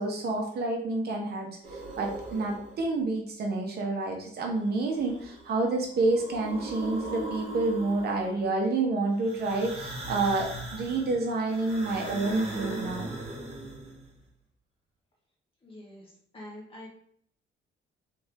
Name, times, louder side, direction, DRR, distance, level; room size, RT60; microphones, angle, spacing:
voice 1, 0.0-13.1, right 3 dB, 50° right, 1 dB, 1.0 m, -29 dB
sound 1, 1.6-2.9 4.6-5.6 5.9-8.5 9.2-14.1, right 1 dB, 30° right, 1.4 m, -39 dB
voice 2, 15.6-16.9, left 1 dB, 25° left, -3 dB, 1.3 m, -46 dB
4.3 x 3.5 x 3.5 m, 0.65 s
cardioid pair, 175°, 20 cm